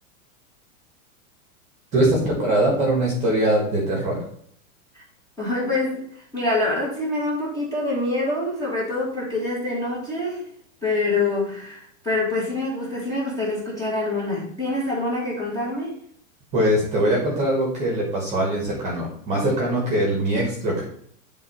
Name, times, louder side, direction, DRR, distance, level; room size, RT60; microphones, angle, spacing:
voice 1, 1.9-4.2 16.5-20.8, right 1 dB, 15° right, -2 dB, 1.4 m, -22 dB
voice 2, 5.4-10.5 10.8-16.0, left 2 dB, 10° left, -6 dB, 1.7 m, -26 dB
8.5 x 3.6 x 4.2 m, 0.66 s
supercardioid pair, 175°, 39 cm